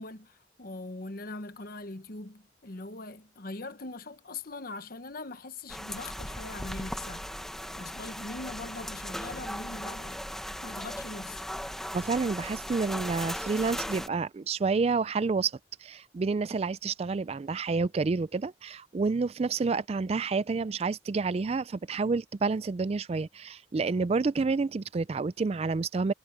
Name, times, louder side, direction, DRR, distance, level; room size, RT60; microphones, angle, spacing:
voice 1, 0.0-7.3 7.7-10.2 10.6-11.4, left 2 dB, 50° left, 1.1 m, -41 dB
sound 1, 5.7-14.1, equal, ahead, 1.1 m, -38 dB
voice 2, 11.9-15.5 15.8-26.1, right 4 dB, 35° right, 0.3 m, -29 dB
head